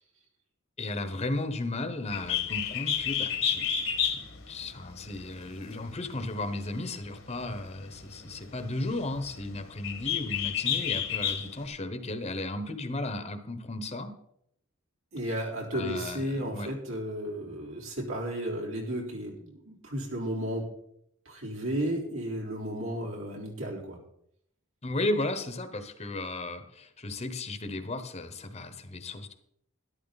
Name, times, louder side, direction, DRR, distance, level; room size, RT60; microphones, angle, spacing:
voice 1, 0.8-14.1 15.7-16.7 24.8-29.3, left 2 dB, 30° left, 9 dB, 1.1 m, -35 dB
Bird, 2.1-11.7, left 8 dB, 65° left, 1.6 m, -32 dB
voice 2, 15.1-20.7 21.3-24.0, equal, 80° right, -2 dB, 4.0 m, -33 dB
12.5 x 11.5 x 4.1 m, 0.72 s
head